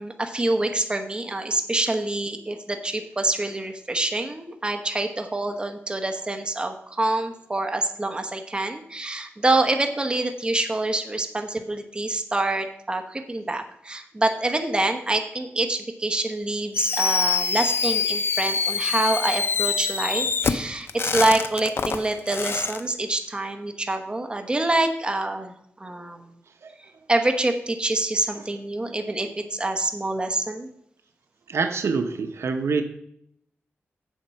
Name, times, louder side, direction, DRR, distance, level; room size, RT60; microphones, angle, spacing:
voice 1, 0.0-26.2 27.1-30.7, right 2 dB, 20° right, 5 dB, 1.1 m, -26 dB
Fireworks, 16.7-22.8, left 5 dB, 60° left, 0.6 m, -25 dB
voice 2, 31.5-32.8, right 4 dB, 75° right, 8 dB, 0.9 m, -25 dB
7.5 x 7.4 x 5.7 m, 0.72 s
wide cardioid pair, 110°, 5 cm